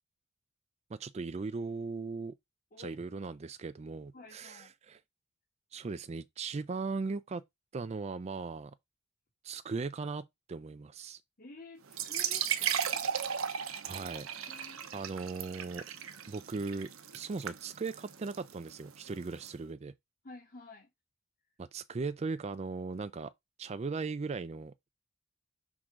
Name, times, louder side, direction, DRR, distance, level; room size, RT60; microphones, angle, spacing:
voice 1, 0.9-2.3 2.8-5.0 5.7-7.4 7.7-8.7 9.4-11.2 13.8-14.3 14.9-15.8 16.3-19.9 21.6-23.3 23.6-24.9, right 4 dB, 30° right, 0.4 m, -38 dB
voice 2, 4.1-4.7 11.4-13.0 14.5-14.8 20.2-20.9, left 3 dB, 45° left, 1.9 m, -51 dB
sound 1, 11.9-19.5, right 8 dB, 85° right, 0.9 m, -36 dB
6.0 x 3.6 x 5.0 m
head